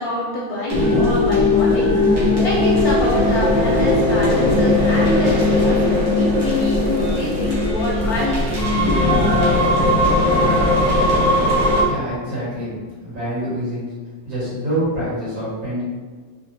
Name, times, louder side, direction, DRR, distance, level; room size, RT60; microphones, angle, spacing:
voice 1, 0.0-9.1, left 1 dB, 70° left, -4 dB, 0.9 m, -26 dB
sound 1, 0.7-11.8, left 1 dB, 50° right, 1.2 m, -18 dB
sound 2, 5.2-9.2, left 2 dB, 90° left, 1.3 m, -35 dB
Bass guitar, 8.8-12.8, left 9 dB, 55° left, 0.5 m, -31 dB
voice 2, 11.8-12.7 13.0-13.8 14.2-15.8, right 1 dB, 85° right, -10 dB, 2.4 m, -26 dB
4.2 x 2.1 x 2.6 m, 1.5 s
omnidirectional pair, 2.0 m